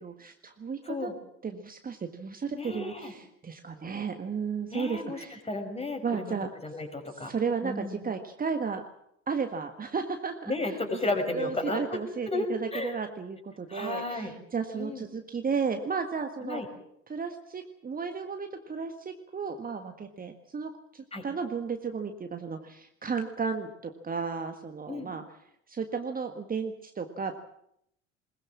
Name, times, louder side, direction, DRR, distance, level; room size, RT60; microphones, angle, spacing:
voice 1, 0.0-1.1 1.4-5.4 6.0-6.5 7.1-8.8 9.3-11.0 11.3-16.6 17.1-25.2 25.7-27.4, right 5 dB, 25° right, 6 dB, 1.7 m, -34 dB
voice 2, 0.8-1.1 2.5-3.1 4.7-6.4 6.6-7.3 7.6-8.0 10.5-12.0 12.3-12.9 13.7-14.3 14.7-15.0 16.4-16.7 21.1-21.2 24.9-25.1, left 2 dB, 15° left, 4 dB, 5.5 m, -33 dB
21.5 x 20.5 x 7.5 m, 0.74 s
figure-of-eight pair, 60°, 34 cm